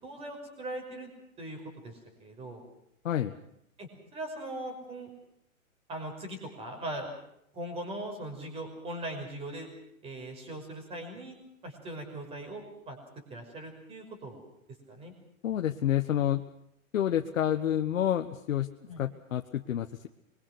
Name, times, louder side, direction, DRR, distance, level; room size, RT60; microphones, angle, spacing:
voice 1, 0.0-1.1 1.4-2.6 3.8-5.1 5.9-7.1 7.5-9.7 10.0-11.4 11.6-13.0 13.3-14.4 14.9-15.1 18.9-19.0, right 1 dB, 15° right, 4 dB, 5.7 m, -40 dB
voice 2, 15.4-16.4 16.9-18.7 19.0-20.1, left 11 dB, 65° left, 5 dB, 1.5 m, -28 dB
26.5 x 23.0 x 6.2 m, 0.76 s
hypercardioid pair, 160°, 42 cm